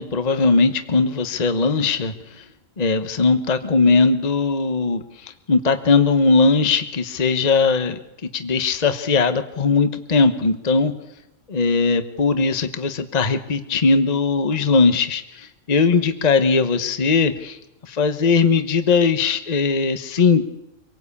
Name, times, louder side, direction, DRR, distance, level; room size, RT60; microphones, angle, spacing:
voice 1, 0.0-2.1 2.8-8.0 8.3-10.9 11.5-17.6 17.8-20.5, left 4 dB, 30° left, 9 dB, 1.1 m, -19 dB
25.5 x 18.0 x 8.5 m, 0.93 s
omnidirectional pair, 1.4 m